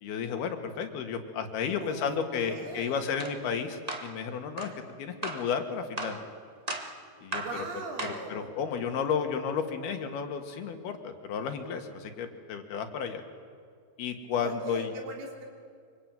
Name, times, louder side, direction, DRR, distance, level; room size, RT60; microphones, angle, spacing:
voice 1, 0.0-4.7 5.0-6.2 7.2-7.4 8.0-13.2 14.0-14.9, left 6 dB, 80° left, 6 dB, 3.8 m, -32 dB
voice 2, 1.8-3.2 7.3-8.5 14.3-15.5, right 3 dB, 85° right, 1 dB, 5.4 m, -40 dB
sound 1, 3.2-3.4 3.9-4.1 4.6-4.7 5.2-5.5 6.0-6.2 6.7-6.9 7.3-7.6 8.0-8.3, right 2 dB, 25° right, 0.7 m, -35 dB
25.0 x 24.5 x 9.3 m, 2.1 s
omnidirectional pair, 4.4 m